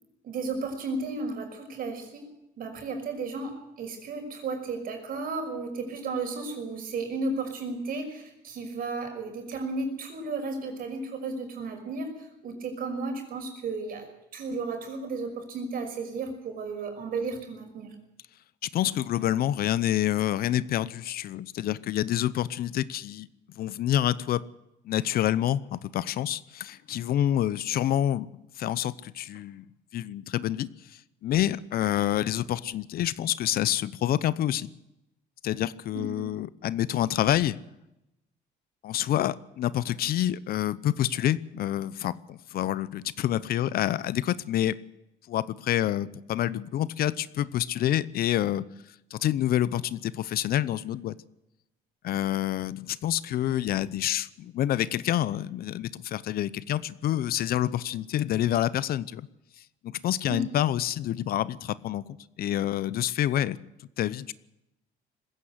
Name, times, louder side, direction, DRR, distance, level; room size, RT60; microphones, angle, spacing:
voice 1, 0.2-2.3 2.6-17.9 35.9-36.3 60.3-60.5, right 3 dB, 60° right, 5 dB, 5.7 m, -34 dB
voice 2, 18.6-23.3 23.5-24.4 24.8-28.3 28.6-29.6 29.9-34.7 35.4-37.6 38.8-44.8 45.3-48.6 49.1-51.1 52.0-59.3 59.8-63.6 64.0-64.3, left 12 dB, 60° left, 19 dB, 0.8 m, -27 dB
20.5 x 16.0 x 8.0 m, 0.91 s
cardioid pair, 110°, 17 cm